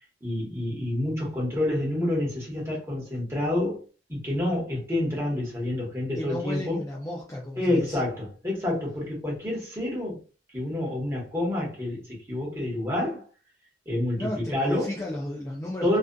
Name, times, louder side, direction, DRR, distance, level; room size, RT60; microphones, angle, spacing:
voice 1, 0.2-3.8 4.1-6.8 7.6-10.2 10.5-13.2 13.9-14.9 15.8-16.0, left 1 dB, 15° right, 1.1 m, -28 dB
voice 2, 6.1-8.0 14.2-16.0, left 1 dB, 15° left, 0.4 m, -33 dB
2.5 x 2.4 x 2.2 m
head